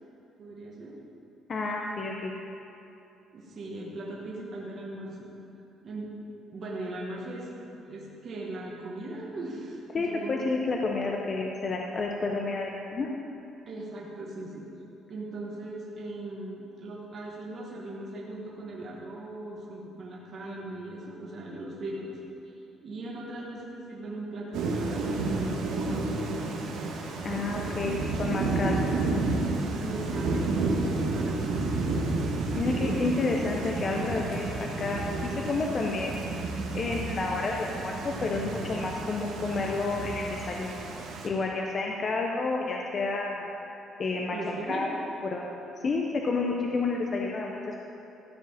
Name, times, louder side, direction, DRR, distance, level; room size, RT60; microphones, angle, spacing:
voice 1, 0.4-0.9 3.3-5.3 5.8-6.1 6.5-10.5 13.7-14.7 15.1-22.2 22.4-22.5 22.8-26.0 29.8-32.1 44.3-44.9, right 2 dB, 35° right, -4 dB, 1.3 m, -39 dB
voice 2, 1.5-2.3 9.9-13.1 27.2-28.8 32.6-36.2 36.7-40.8 41.2-43.5 44.0-44.4 44.7-44.9 45.3-45.5 45.8-47.6, left 3 dB, 30° left, 0 dB, 0.7 m, -30 dB
Thunder / Rain, 24.5-41.3, right 3 dB, 75° right, 1.4 m, -31 dB
14.0 x 5.0 x 7.2 m, 2.8 s
cardioid pair, 175°, 0 cm